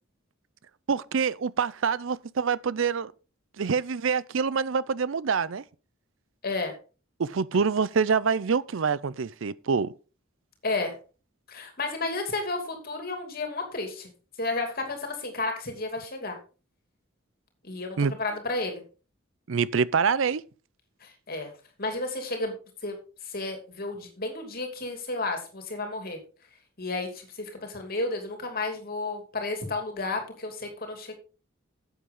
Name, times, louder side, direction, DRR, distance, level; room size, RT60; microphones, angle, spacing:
voice 1, 0.9-3.1 3.6-5.6 7.2-9.9 18.0-18.2 19.5-20.4, right 5 dB, 65° right, 0.5 m, -26 dB
voice 2, 6.4-6.7 10.6-10.9 11.5-14.1 14.4-16.4 17.6-18.8 21.0-21.5 21.8-22.5 22.8-23.0 23.2-26.2 26.8-31.1, left 2 dB, 45° left, 2.8 m, -32 dB
11.5 x 8.1 x 3.8 m
head